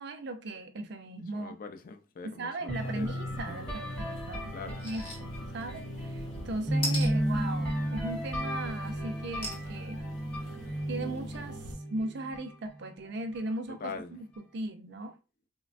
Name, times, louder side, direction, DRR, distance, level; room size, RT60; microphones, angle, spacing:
voice 1, 0.0-1.6 2.2-10.0 10.9-11.6 11.9-13.8 14.1-14.3 14.5-15.1, right 2 dB, 60° right, 0.4 m, -38 dB
voice 2, 1.3-3.8 4.5-4.9 13.8-14.2, left 5 dB, 45° left, 0.3 m, -43 dB
sound 1, 2.7-11.7, right 1 dB, 80° left, 0.8 m, -46 dB
sound 2, 2.7-12.5, equal, 5° left, 0.7 m, -34 dB
sound 3, 4.8-5.2 5.6-5.7 6.8-7.1 9.4-9.7 10.2-10.3 10.6-10.7, left 1 dB, 30° left, 0.9 m, -35 dB
3.1 x 2.1 x 2.5 m
head